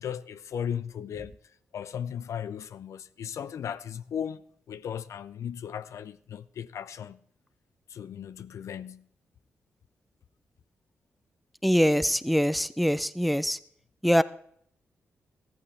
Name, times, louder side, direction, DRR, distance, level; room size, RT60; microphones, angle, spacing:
voice 1, 0.0-1.4 1.7-4.4 4.7-7.2 7.9-9.0, left 8 dB, 75° left, 0.5 m, -36 dB
voice 2, 11.6-13.6 14.0-14.2, equal, ahead, 0.6 m, -23 dB
14.5 x 14.0 x 3.3 m
supercardioid pair, 50°, 5 cm